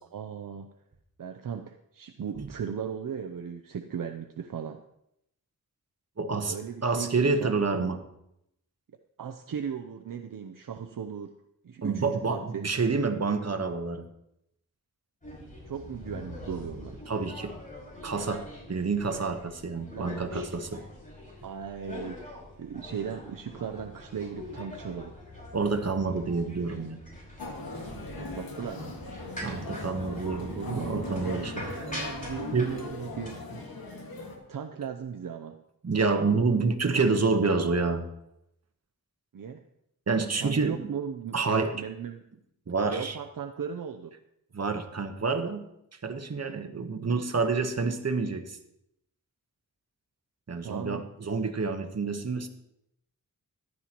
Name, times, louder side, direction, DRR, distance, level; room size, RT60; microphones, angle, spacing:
voice 1, 0.1-0.7 1.2-4.8 6.5-7.5 8.9-11.4 11.6-12.6 15.7-17.0 19.9-20.5 21.4-25.1 28.1-29.0 29.9-34.0 34.5-35.6 39.3-39.6 40.4-41.3 41.7-42.2 42.9-44.1 46.5-46.8 50.6-51.1, right 7 dB, 65° right, 6 dB, 0.7 m, -37 dB
voice 2, 6.2-6.5 6.8-8.0 11.8-14.1 17.1-17.5 18.0-20.8 25.5-27.0 29.4-31.5 32.0-32.1 32.5-32.8 35.8-38.1 40.1-40.9 41.3-41.8 42.7-43.2 44.5-45.7 46.0-48.6 50.5-52.5, right 4 dB, 45° right, 6 dB, 1.2 m, -28 dB
sound 1, 15.2-33.3, left 1 dB, 20° left, 5.3 m, -43 dB
sound 2, 27.4-34.4, left 3 dB, 80° left, 1.9 m, -39 dB
14.0 x 11.0 x 3.0 m, 0.80 s
wide cardioid pair, 75°, 36 cm